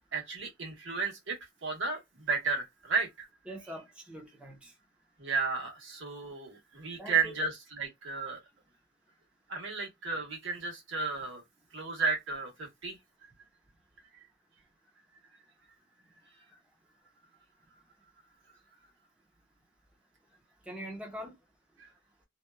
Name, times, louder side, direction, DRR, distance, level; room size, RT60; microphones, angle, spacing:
voice 1, 0.1-3.3 5.2-8.4 9.5-11.4 11.7-13.3 21.8-21.9, right 4 dB, 80° right, 1.3 m, -33 dB
voice 2, 3.5-4.7 7.0-7.4 20.6-21.4, equal, 5° right, 0.6 m, -43 dB
2.7 x 2.2 x 2.3 m
head